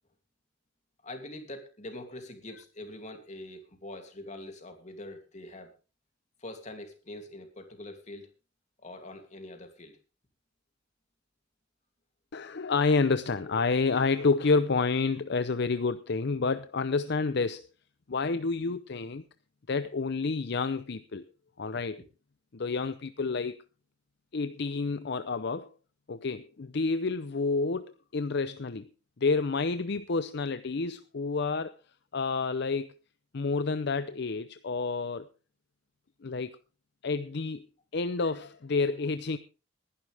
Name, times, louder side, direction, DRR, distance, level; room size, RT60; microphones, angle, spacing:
voice 1, 1.0-5.7 6.4-8.3 8.8-10.0, left 1 dB, 40° left, 5 dB, 2.8 m, -44 dB
voice 2, 12.3-17.7 18.1-19.2 19.7-21.2 21.6-22.0 22.5-23.6 24.3-25.7 26.1-28.9 29.2-31.7 32.1-32.9 33.3-35.3 36.2-36.5 37.0-37.7 37.9-39.4, left 4 dB, 60° left, 12 dB, 0.6 m, -29 dB
20.0 x 11.5 x 3.4 m, 0.33 s
head